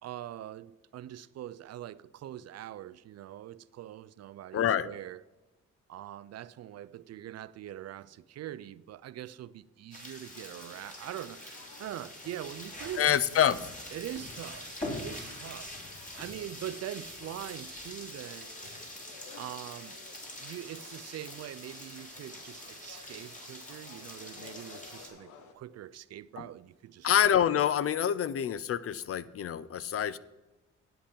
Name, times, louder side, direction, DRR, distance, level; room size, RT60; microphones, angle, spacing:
voice 1, 0.0-5.2 5.9-13.2 13.9-15.7 16.2-18.5 19.4-20.0 20.4-27.1, right 12 dB, 55° right, 0.5 m, -43 dB
voice 2, 4.5-4.9 13.0-13.6 26.4-26.5 27.0-30.2, left 9 dB, 50° left, 0.5 m, -26 dB
sound 1, 9.9-25.1, left 1 dB, 25° left, 3.6 m, -44 dB
sound 2, 10.3-25.5, left 5 dB, 90° left, 1.2 m, -55 dB
10.0 x 7.8 x 5.3 m
cardioid pair, 90°, 30 cm